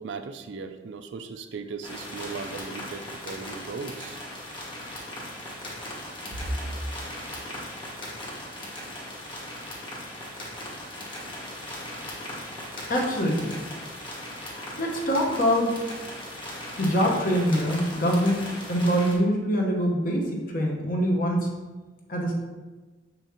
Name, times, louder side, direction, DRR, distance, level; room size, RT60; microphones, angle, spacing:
voice 1, 0.0-4.2, right 4 dB, 70° right, 8 dB, 0.4 m, -37 dB
sound 1, 1.8-19.1, left 1 dB, 25° left, 1.3 m, -38 dB
voice 2, 4.5-4.9 12.9-13.6 14.5-15.7 16.8-18.4 18.7-20.2 20.5-21.5 22.1-22.3, equal, 50° left, -1 dB, 1.1 m, -24 dB
7.0 x 5.6 x 2.9 m, 1.3 s
head